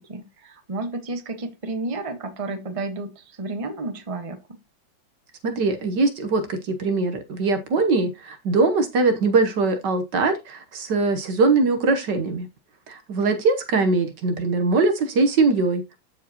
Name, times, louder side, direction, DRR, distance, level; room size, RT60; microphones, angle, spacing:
voice 1, 0.1-4.4, right 2 dB, 20° right, 1.2 m, -31 dB
voice 2, 5.4-12.5 12.9-15.8, right 3 dB, 65° right, 1.6 m, -21 dB
13.5 x 4.8 x 2.9 m
omnidirectional pair, 2.1 m